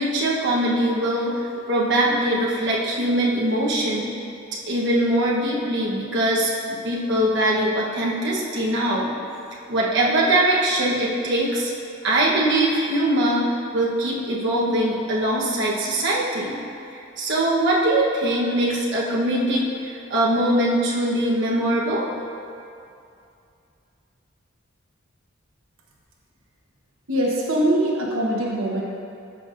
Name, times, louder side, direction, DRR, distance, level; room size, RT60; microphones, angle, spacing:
voice 1, 0.0-1.3 1.7-4.1 4.6-6.5 6.8-9.1 9.7-11.7 12.0-16.6 16.9-22.1, right 1 dB, 60° right, -5 dB, 1.1 m, -22 dB
voice 2, 27.1-28.8, right 1 dB, 85° right, -3 dB, 1.1 m, -22 dB
13.5 x 5.9 x 2.6 m, 2.5 s
head